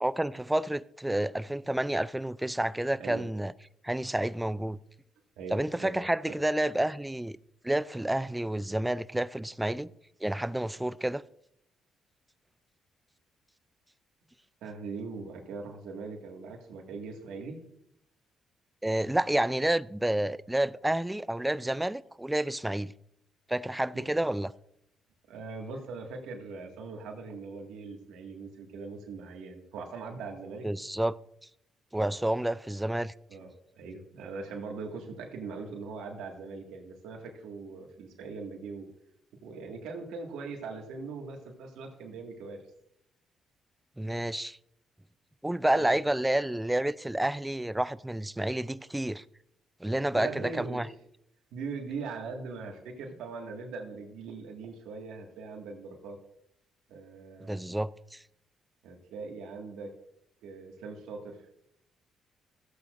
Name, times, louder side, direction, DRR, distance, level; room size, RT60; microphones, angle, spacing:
voice 1, 0.0-3.5 3.8-4.8 5.5-7.4 7.6-9.9 10.2-11.2 18.8-22.9 23.5-24.5 30.6-31.2 31.9-33.1 44.0-44.6 45.4-49.2 49.8-50.9 57.4-58.2, right 1 dB, 10° right, 0.3 m, -29 dB
voice 2, 5.4-6.3 14.6-17.6 23.9-24.1 25.3-30.7 32.0-32.1 33.3-33.5 33.8-38.9 39.4-42.6 45.7-46.0 50.2-50.9 51.5-56.2 56.9-57.6 58.8-59.9 60.4-61.4, right 4 dB, 90° right, 1.8 m, -41 dB
15.0 x 8.3 x 2.5 m
cardioid pair, 90°, 0 cm